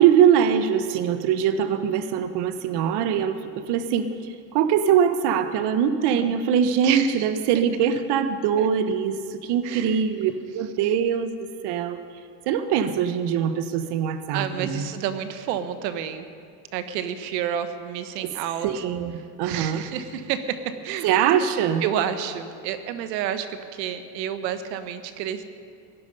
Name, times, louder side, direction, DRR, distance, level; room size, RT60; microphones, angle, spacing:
voice 1, 0.0-12.0 12.5-14.9 18.6-19.8 21.0-21.8, right 8 dB, 55° right, 10 dB, 1.0 m, -22 dB
voice 2, 6.8-7.3 8.6-8.7 9.6-10.0 14.3-16.2 16.7-18.8 19.4-21.1 21.8-25.4, right 9 dB, 85° right, 10 dB, 1.1 m, -30 dB
17.5 x 11.5 x 5.4 m, 2.4 s
supercardioid pair, 110°, 48 cm